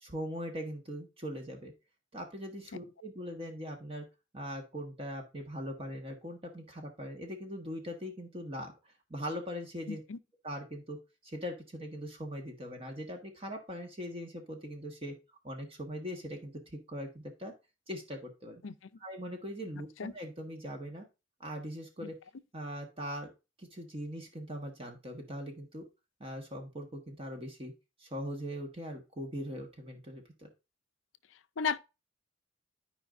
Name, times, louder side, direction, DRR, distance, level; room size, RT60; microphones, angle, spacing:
voice 1, 0.0-1.7 2.1-4.0 4.3-8.7 9.1-10.0 10.4-11.0 11.2-15.1 15.4-17.5 17.9-18.6 19.0-21.0 21.4-22.2 22.5-23.3 23.6-25.8 26.2-27.7 28.0-30.5, equal, 30° right, 1.5 m, -41 dB
voice 2, 9.9-10.2 18.6-18.7 20.0-20.1 31.6-31.8, left 5 dB, 75° left, 0.6 m, -33 dB
12.5 x 5.1 x 2.6 m
head